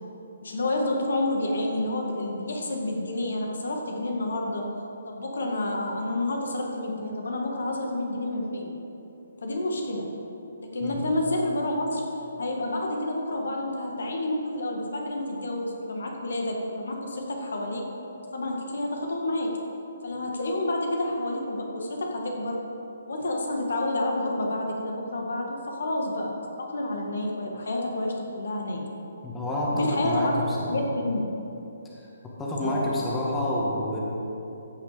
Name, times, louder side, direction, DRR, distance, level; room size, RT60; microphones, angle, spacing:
voice 1, 0.4-4.6 5.1-8.7 9.4-10.1 10.7-12.0 12.4-17.8 18.3-19.5 20.0-22.6 23.1-26.3 26.6-28.8 29.7-30.3 30.7-31.2 32.6-32.9, left 1 dB, 75° left, 0 dB, 1.9 m, -29 dB
voice 2, 10.8-11.3 29.2-30.8 31.9-34.0, left 1 dB, 10° left, -5 dB, 1.8 m, -28 dB
15.0 x 5.8 x 5.0 m, 2.9 s
hypercardioid pair, 150°, 0 cm